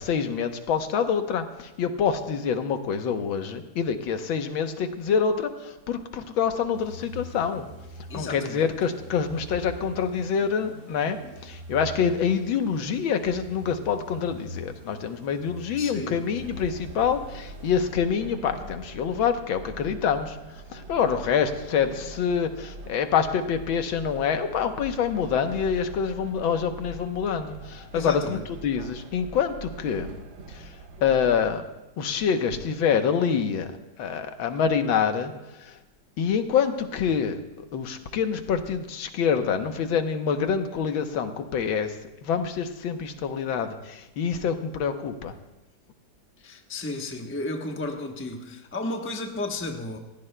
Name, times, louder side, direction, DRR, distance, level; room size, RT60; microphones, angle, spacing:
voice 1, 0.0-7.7 8.1-20.4 20.7-28.4 28.6-30.1 30.5-30.8 31.0-31.6 32.0-35.3 35.6-35.8 36.2-37.4 37.7-42.0 42.2-45.3, left 7 dB, 85° left, 7 dB, 1.8 m, -26 dB
sound 1, 6.7-18.5, equal, 45° right, 3.2 m, -43 dB
voice 2, 8.1-8.7 15.8-16.2 27.9-28.5 46.4-50.0, left 2 dB, 10° left, 3 dB, 0.6 m, -33 dB
Train, 16.4-31.6, right 2 dB, 75° right, 2.0 m, -43 dB
27.5 x 16.0 x 2.2 m, 0.99 s
omnidirectional pair, 2.1 m